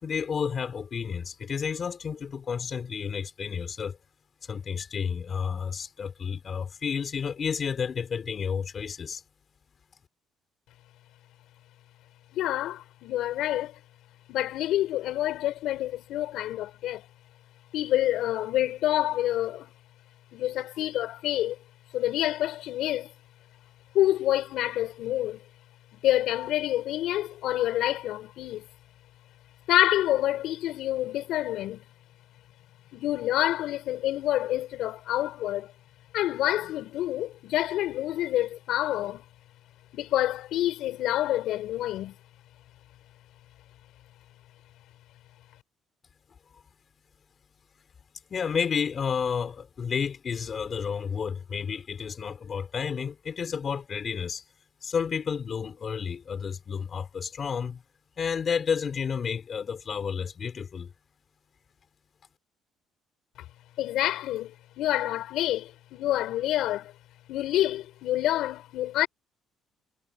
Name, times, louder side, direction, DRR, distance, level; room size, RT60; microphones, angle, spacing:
voice 1, 0.0-4.0 4.4-9.2 46.5-46.6 48.3-54.5 54.8-57.8 58.2-60.9, left 6 dB, 40° left, 4.2 m, -31 dB
voice 2, 12.3-13.8 14.3-17.1 17.7-19.7 20.3-21.6 21.9-23.1 23.9-25.4 25.9-28.7 29.7-31.8 32.9-35.7 36.1-39.2 39.9-42.2 63.8-66.9 67.3-69.1, left 14 dB, 75° left, 5.6 m, -27 dB
cardioid pair, 105°, 0 cm